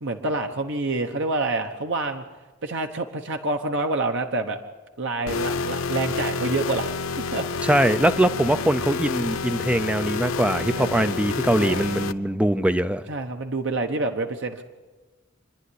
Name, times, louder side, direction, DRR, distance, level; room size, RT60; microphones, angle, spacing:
voice 1, 0.0-2.2 2.6-4.6 5.0-6.9 7.2-7.7 10.7-11.0 11.6-11.8 13.1-14.6, right 2 dB, 65° right, 5 dB, 1.1 m, -27 dB
sound 1, 5.3-12.1, left 4 dB, 85° left, 0.8 m, -29 dB
voice 2, 7.6-13.1, right 1 dB, 5° right, 11 dB, 0.6 m, -22 dB
27.0 x 10.5 x 10.0 m, 1.3 s
head